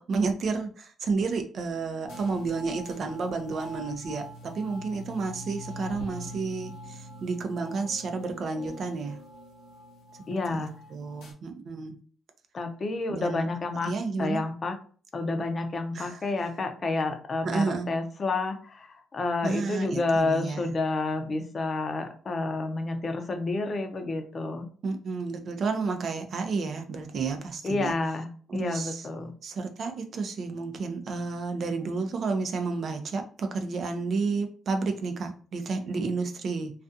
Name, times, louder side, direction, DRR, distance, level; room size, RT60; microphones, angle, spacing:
voice 1, 0.0-9.2 10.6-12.0 13.1-13.5 13.8-14.4 15.9-16.2 17.4-17.9 19.4-20.7 24.8-27.9 28.5-29.0 29.4-36.7, right 4 dB, 55° right, 6 dB, 0.5 m, -31 dB
sound 1, 2.1-11.3, equal, 85° left, 1.0 m, -44 dB
voice 2, 10.3-10.7 12.5-13.9 14.2-14.8 15.1-24.7 27.6-28.3 28.5-29.3, left 3 dB, 40° left, 5 dB, 0.5 m, -29 dB
2.4 x 2.4 x 2.5 m, 0.42 s
cardioid pair, 90°, 0 cm